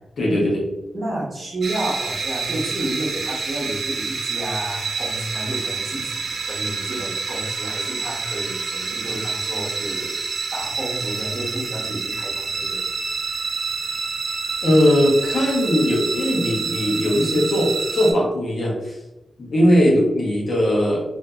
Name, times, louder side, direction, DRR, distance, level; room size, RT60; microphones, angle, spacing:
voice 1, 0.2-0.7 14.6-19.0 19.4-21.0, equal, 50° left, -3 dB, 0.8 m, -19 dB
voice 2, 0.9-10.2 10.5-12.8, right 1 dB, 40° right, -4 dB, 0.8 m, -31 dB
sound 1, 1.6-18.1, right 4 dB, 60° right, 0.4 m, -28 dB
2.6 x 2.5 x 2.3 m, 0.99 s
wide cardioid pair, 160°, 0 cm